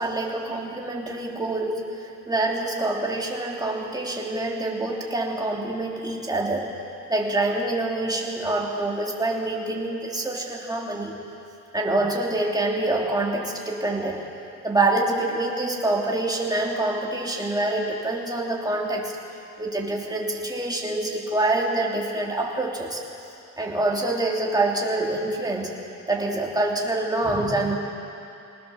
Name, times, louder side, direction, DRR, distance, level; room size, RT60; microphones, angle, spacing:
voice 1, 0.0-6.7 7.1-11.2 11.7-14.3 14.6-19.2 19.6-23.0 23.6-27.8, right 2 dB, 15° right, -1 dB, 3.1 m, -26 dB
20.5 x 19.5 x 7.0 m, 2.7 s
cardioid pair, 90°, 30 cm